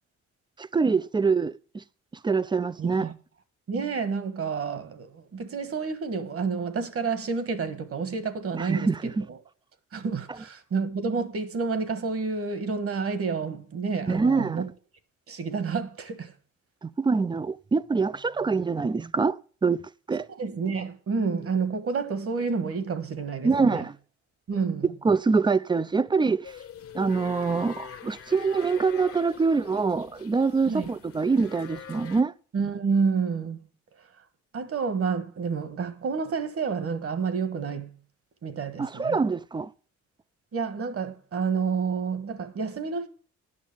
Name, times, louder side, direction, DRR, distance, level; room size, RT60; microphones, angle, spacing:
voice 1, 0.6-1.8 2.2-3.1 8.5-9.3 14.1-14.6 16.8-19.8 20.1-20.3 23.4-23.9 25.0-26.5 26.9-32.3 38.8-39.7, right 4 dB, 15° right, 0.4 m, -25 dB
voice 2, 2.8-3.1 3.7-9.4 9.9-14.7 15.3-16.3 20.4-23.8 24.5-24.9 30.7-30.9 32.5-33.6 34.5-37.9 38.4-39.2 40.5-43.1, right 5 dB, 50° right, 1.5 m, -29 dB
sound 1, 26.4-32.2, left 7 dB, 50° left, 1.0 m, -44 dB
9.6 x 6.2 x 7.2 m
cardioid pair, 90°, 30 cm